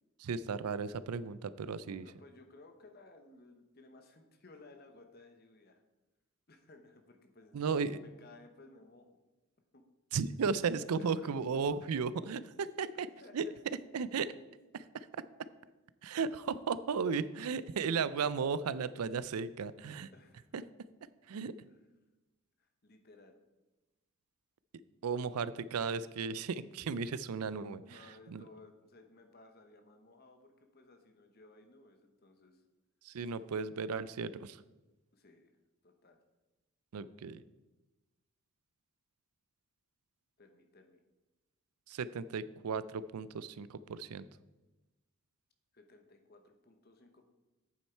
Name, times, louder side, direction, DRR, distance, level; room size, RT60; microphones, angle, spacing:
voice 1, 0.2-2.1 7.5-8.0 10.1-12.4 12.8-13.1 13.3-13.4 13.9-14.3 14.7-15.1 16.0-20.1 20.5-20.6 21.3-21.5 25.0-28.4 33.0-34.6 36.9-37.4 41.9-44.3, right 5 dB, 85° right, 16 dB, 0.4 m, -35 dB
voice 2, 1.8-5.8 6.5-9.2 9.7-9.8 11.0-11.6 13.2-13.6 20.1-20.6 21.7-21.8 22.6-23.4 27.9-32.6 35.1-35.6 35.8-36.2 40.4-41.0 45.7-47.3, left 2 dB, 45° left, 6 dB, 1.0 m, -58 dB
8.7 x 7.2 x 4.5 m, 1.1 s
head